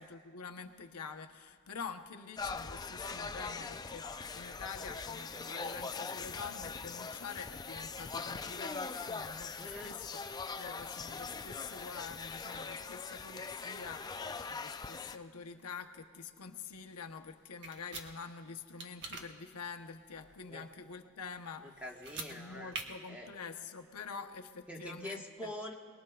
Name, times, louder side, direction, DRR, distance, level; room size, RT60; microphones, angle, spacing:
voice 1, 0.0-10.2 10.6-21.8 22.3-25.5, left 5 dB, 85° left, 6 dB, 0.8 m, -46 dB
sound 1, 2.4-15.2, left 4 dB, 20° left, 0.4 m, -42 dB
voice 2, 9.6-10.0 20.5-20.7 21.6-22.7 23.1-23.3 24.7-25.7, left 1 dB, 5° right, 0 dB, 1.3 m, -45 dB
sound 2, 17.6-18.1 18.8-19.2 21.9-22.3 22.7-22.8, right 4 dB, 55° right, 1.3 m, -42 dB
27.0 x 20.5 x 2.3 m, 2.1 s
head